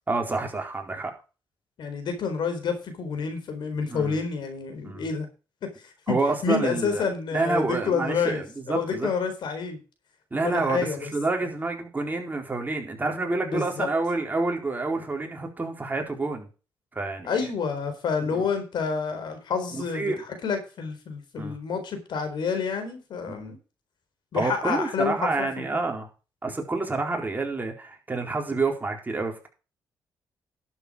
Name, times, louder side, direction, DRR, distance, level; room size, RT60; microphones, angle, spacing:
voice 1, 0.1-1.1 3.9-4.2 4.8-5.1 6.1-9.1 10.3-16.5 16.9-17.3 18.3-18.5 19.7-20.2 21.4-21.5 23.3-23.5 24.3-26.1 26.4-29.5, right 3 dB, 20° right, 2 dB, 4.2 m, -28 dB
voice 2, 1.8-5.3 5.8-6.2 6.4-9.8 10.4-11.1 13.4-13.9 17.2-20.1 20.4-23.6 24.3-25.5, left 5 dB, 70° left, 7 dB, 4.3 m, -29 dB
12.0 x 8.0 x 5.1 m, 0.33 s
cardioid pair, 85°, 8 cm